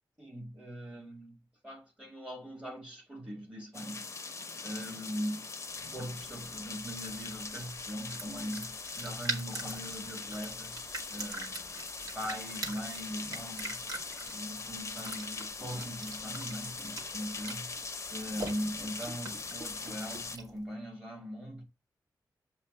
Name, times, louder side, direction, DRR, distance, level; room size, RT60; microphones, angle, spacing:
voice 1, 0.2-4.0 4.6-5.4 5.9-11.5 12.1-13.9 14.2-17.7 18.1-21.6, equal, 15° right, 2.4 m, -41 dB
sound 1, 3.7-20.4, left 4 dB, 40° left, 0.7 m, -41 dB
sound 2, 5.8-20.6, right 3 dB, 55° right, 1.4 m, -44 dB
7.3 x 2.5 x 5.4 m
wide cardioid pair, 130°, 7 cm